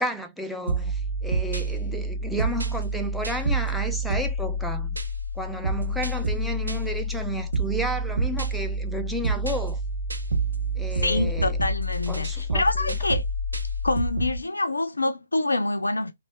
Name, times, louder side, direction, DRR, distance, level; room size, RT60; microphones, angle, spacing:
voice 1, 0.0-5.0 5.3-9.8 10.8-11.6 12.1-13.0, equal, ahead, 0.4 m, -32 dB
sound 1, 0.7-14.4, right 1 dB, 75° right, 0.7 m, -28 dB
voice 2, 11.0-13.2 13.8-16.1, left 2 dB, 75° left, 0.3 m, -26 dB
3.1 x 2.1 x 2.5 m
figure-of-eight pair, 130°, 0 cm